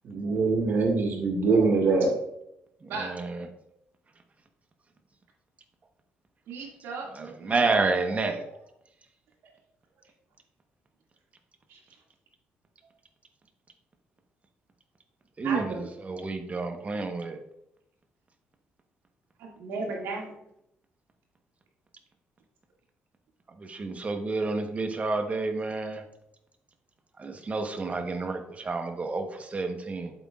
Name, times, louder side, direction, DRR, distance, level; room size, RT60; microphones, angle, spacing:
voice 1, 0.0-2.1, right 4 dB, 60° right, 2 dB, 1.9 m, -23 dB
voice 2, 3.0-3.4 7.4-8.4 15.4-15.7 16.0-17.4 23.7-26.0 27.2-30.1, right 3 dB, 35° right, 6 dB, 1.1 m, -29 dB
voice 3, 6.5-7.3 7.6-7.9 11.7-11.8 15.4-15.9 19.4-20.4, right 3 dB, 80° right, -1 dB, 2.2 m, -35 dB
8.0 x 7.6 x 2.4 m, 0.80 s
cardioid pair, 75°, 4 cm